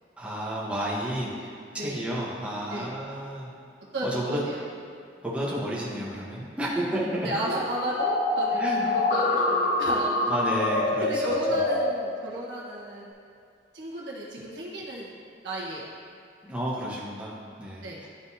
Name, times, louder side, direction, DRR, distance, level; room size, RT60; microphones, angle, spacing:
voice 1, 0.2-3.5 4.0-4.4 5.2-7.3 8.5-8.9 10.2-11.6 16.4-17.8, right 1 dB, 5° right, -6 dB, 1.1 m, -31 dB
voice 2, 3.9-4.6 7.2-10.2 11.0-13.1 13.7-15.1 15.4-15.9 17.8-18.0, right 1 dB, 70° right, -5 dB, 1.3 m, -33 dB
sound 1, 8.0-11.9, left 2 dB, 50° left, 0.6 m, -25 dB
11.5 x 3.9 x 2.8 m, 2.5 s
head